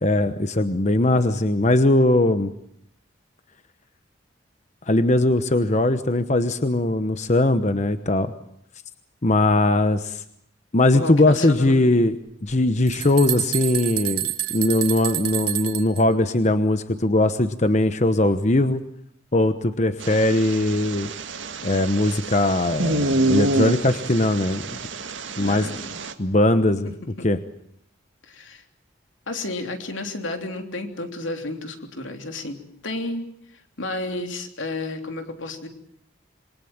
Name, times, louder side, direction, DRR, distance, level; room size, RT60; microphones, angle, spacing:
voice 1, 0.0-2.5 4.9-8.3 9.2-10.2 10.7-12.2 12.4-18.8 19.3-21.1 21.6-24.6 25.4-25.7 26.2-26.9 27.2-27.4, left 1 dB, 35° left, 10 dB, 1.0 m, -20 dB
voice 2, 10.9-11.9 25.4-26.0 26.8-27.3 28.3-28.6 29.3-32.6 32.8-33.3 33.8-35.7, left 2 dB, 85° left, 5 dB, 3.3 m, -31 dB
sound 1, 12.5-12.6 12.9-16.0, right 13 dB, 55° right, 2.1 m, -28 dB
sound 2, 20.0-26.1, right 2 dB, 75° right, 1.9 m, -27 dB
27.5 x 22.0 x 7.3 m, 0.70 s
head